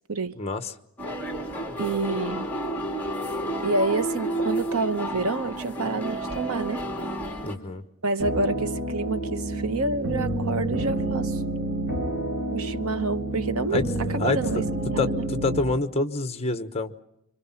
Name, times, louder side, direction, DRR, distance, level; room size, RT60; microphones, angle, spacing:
voice 1, 0.4-0.7 7.4-7.8 13.7-13.9 14.2-14.7 15.0-16.9, left 3 dB, 30° left, 1.1 m, -27 dB
sound 1, 1.0-7.5, right 1 dB, 10° left, 3.0 m, -31 dB
voice 2, 1.8-2.5 3.6-6.8 8.0-11.4 12.5-14.6 14.9-15.2, right 3 dB, 75° right, 1.0 m, -28 dB
sound 2, 8.2-15.6, right 1 dB, 55° right, 4.0 m, -29 dB
27.0 x 25.0 x 5.8 m
head